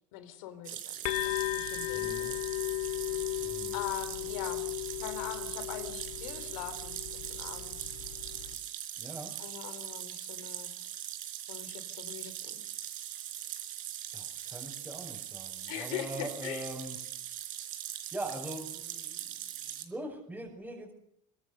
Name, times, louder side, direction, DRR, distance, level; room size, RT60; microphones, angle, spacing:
voice 1, 0.1-2.4 3.7-4.7 5.0-7.8 9.4-10.7 11.5-12.6 15.7-16.7, left 11 dB, 85° left, 11 dB, 3.7 m, -42 dB
sound 1, 0.6-19.8, right 12 dB, 55° right, 4.4 m, -41 dB
sound 2, 1.0-8.5, left 18 dB, 65° left, 2.5 m, -36 dB
voice 2, 1.9-2.3 3.4-3.8 9.0-9.3 14.1-17.0 18.1-20.9, right 1 dB, 10° right, -4 dB, 6.2 m, -42 dB
23.5 x 21.5 x 6.8 m, 0.72 s
supercardioid pair, 130°, 17 cm